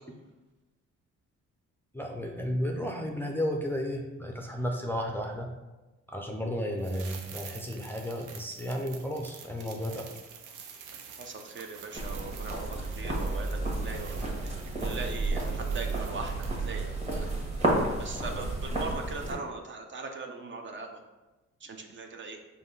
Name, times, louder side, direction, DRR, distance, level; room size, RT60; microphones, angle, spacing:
voice 1, 1.9-5.5 6.1-10.1, equal, 5° left, 0 dB, 0.4 m, -33 dB
sound 1, 6.8-16.8 17.0-17.1, right 6 dB, 80° right, 0.6 m, -48 dB
voice 2, 11.2-17.3 18.0-21.0 21.6-22.4, right 3 dB, 40° right, 3 dB, 0.5 m, -40 dB
sound 2, 11.9-19.3, right 2 dB, 20° right, 1.3 m, -31 dB
5.1 x 2.3 x 3.8 m, 1.1 s
cardioid pair, 90°, 30 cm